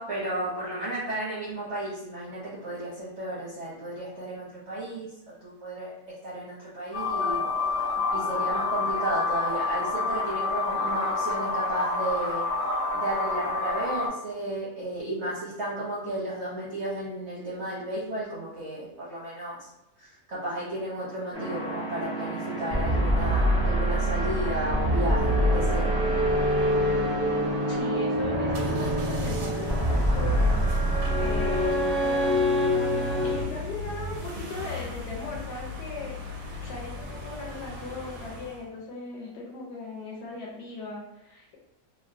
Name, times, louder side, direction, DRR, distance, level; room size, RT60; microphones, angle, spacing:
voice 1, 0.0-5.1 5.4-7.4 8.1-12.5 12.9-19.7 20.0-25.9, right 1 dB, 55° right, -8 dB, 0.8 m, -33 dB
sound 1, 6.9-14.1, left 3 dB, 45° left, 1.0 m, -28 dB
sound 2, 21.3-33.4, equal, 25° right, 0.5 m, -25 dB
voice 2, 27.7-32.1 32.9-36.2 36.6-41.6, left 3 dB, 70° left, -2 dB, 1.1 m, -38 dB
sound 3, 28.5-38.7, left 2 dB, 85° right, 1.3 m, -37 dB
3.3 x 2.2 x 2.5 m, 0.88 s
omnidirectional pair, 2.0 m